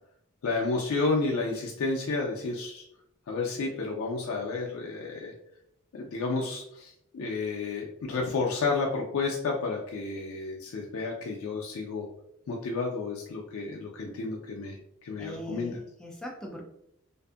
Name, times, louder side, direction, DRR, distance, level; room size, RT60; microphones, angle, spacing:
voice 1, 0.4-2.8 3.3-5.3 5.9-12.1 12.5-15.8, left 3 dB, 80° left, -1 dB, 0.4 m, -31 dB
voice 2, 15.2-16.6, equal, 5° left, -1 dB, 0.3 m, -41 dB
2.5 x 2.5 x 2.3 m, 0.77 s
head